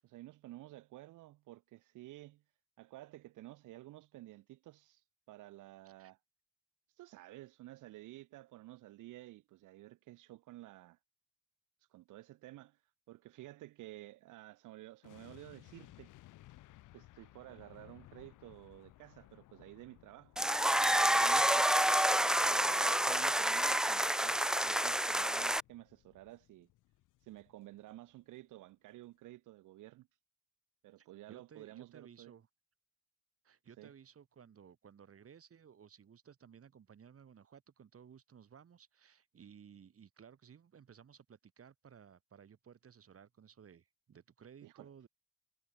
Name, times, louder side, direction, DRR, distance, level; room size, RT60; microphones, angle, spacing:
voice 1, 0.0-2.4 2.8-6.2 6.9-11.0 11.8-12.8 13.1-16.1 16.9-20.3 20.7-21.7 22.5-26.7 27.2-30.1 30.8-32.3 33.8-33.9 44.6-44.9, right 16 dB, 85° right, 1.2 m, -53 dB
sound 1, 15.0-28.2 28.5-28.6, left 16 dB, 90° left, 2.9 m, -61 dB
sound 2, 20.4-25.6, right 1 dB, ahead, 0.4 m, -29 dB
voice 2, 31.0-32.5 33.4-45.1, right 7 dB, 50° right, 4.2 m, -58 dB
cardioid pair, 90°, 30 cm